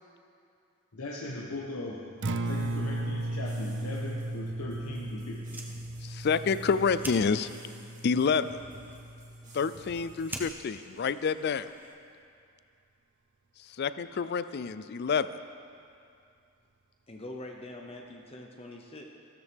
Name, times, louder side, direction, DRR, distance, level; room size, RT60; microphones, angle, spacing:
voice 1, 0.9-2.1 2.4-5.6, left 1 dB, 85° left, -3 dB, 1.1 m, -39 dB
Acoustic guitar, 2.1-10.3, right 1 dB, 55° right, 0.6 m, -36 dB
sound 1, 2.4-10.4, right 1 dB, 35° right, 2.4 m, -54 dB
Fire, 5.4-12.2, right 1 dB, 10° right, 0.8 m, -47 dB
voice 2, 6.0-7.5 8.0-8.5 9.5-11.7 13.7-15.3, left 5 dB, 50° left, 14 dB, 0.4 m, -28 dB
voice 3, 17.1-19.0, left 1 dB, 25° left, 1 dB, 0.8 m, -43 dB
15.5 x 13.0 x 3.5 m, 2.4 s
head